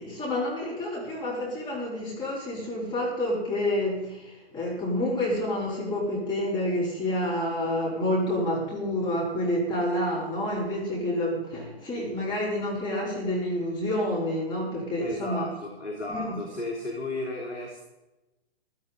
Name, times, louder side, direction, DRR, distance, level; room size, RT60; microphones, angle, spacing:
voice 1, 0.0-15.5 16.1-16.4, left 1 dB, 15° left, -5 dB, 4.2 m, -28 dB
voice 2, 15.0-17.8, left 2 dB, 80° left, -1 dB, 3.4 m, -34 dB
15.5 x 12.5 x 4.1 m, 0.98 s
figure-of-eight pair, 125°, 33 cm